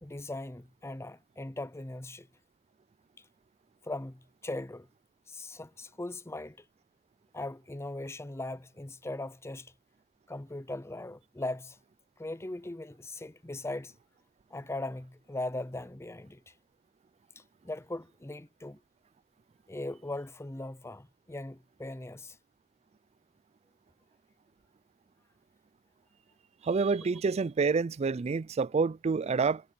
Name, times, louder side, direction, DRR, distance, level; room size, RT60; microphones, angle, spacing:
voice 1, 0.0-2.3 3.8-4.9 5.3-6.6 7.3-9.7 10.3-11.8 12.2-13.9 14.5-16.5 17.4-18.8 19.7-22.4 27.0-27.1, left 2 dB, 15° left, 0.6 m, -39 dB
voice 2, 26.6-29.6, right 4 dB, 30° right, 0.3 m, -28 dB
head